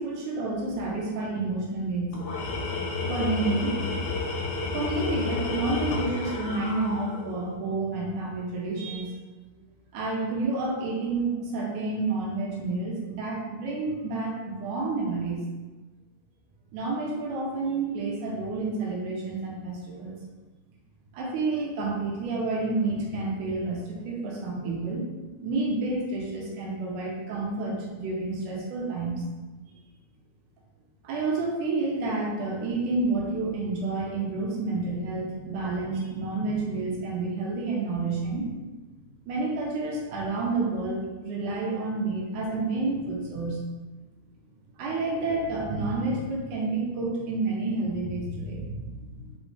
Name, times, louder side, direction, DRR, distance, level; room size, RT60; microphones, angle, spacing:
voice 1, 0.0-2.1 3.1-3.8 4.4-9.1 9.9-15.4 16.7-20.2 21.1-25.1 25.4-29.2 31.0-38.5 39.2-43.6 44.8-49.3, right 3 dB, 90° right, -3 dB, 2.4 m, -29 dB
Tools, 2.1-7.5, left 3 dB, 75° left, 2.2 m, -31 dB
5.4 x 3.1 x 3.1 m, 1.2 s
omnidirectional pair, 3.5 m